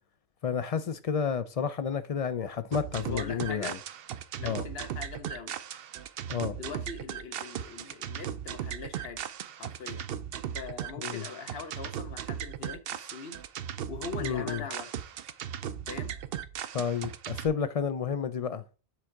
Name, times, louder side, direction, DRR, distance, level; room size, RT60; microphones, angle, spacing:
voice 1, 0.4-3.8 4.4-4.6 6.3-6.6 11.0-11.2 14.2-14.6 16.7-18.6, left 7 dB, 50° left, 0.4 m, -31 dB
sound 1, 2.7-17.5, right 9 dB, 65° right, 0.7 m, -37 dB
voice 2, 3.0-3.8 4.3-5.5 6.5-9.3 9.6-10.1 10.5-13.4 13.9-14.9 15.9-16.1, left 5 dB, 65° left, 1.2 m, -41 dB
7.5 x 3.7 x 4.5 m
omnidirectional pair, 1.1 m